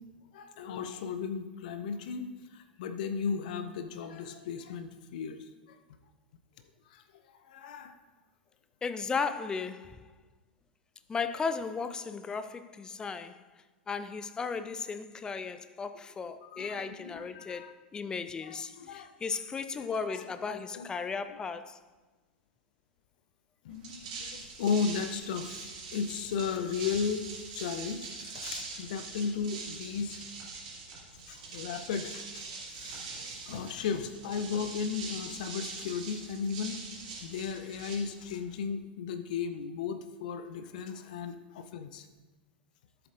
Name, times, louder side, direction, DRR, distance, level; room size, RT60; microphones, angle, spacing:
voice 1, 0.3-5.4 5.7-5.8 6.9-7.0 7.5-7.9 16.4-17.7 18.4-19.1 19.8-20.8 23.6-24.0 24.3-25.6 25.9-30.2 31.3-32.4 32.7-36.8 37.2-42.1, left 6 dB, 55° left, 0.7 m, -35 dB
voice 2, 8.8-10.1 11.1-13.4 13.9-21.8, left 5 dB, 15° left, 0.4 m, -35 dB
sound 1, 23.7-38.5, right 4 dB, 55° right, 2.9 m, -43 dB
13.5 x 7.8 x 2.6 m
figure-of-eight pair, 95°, 5 cm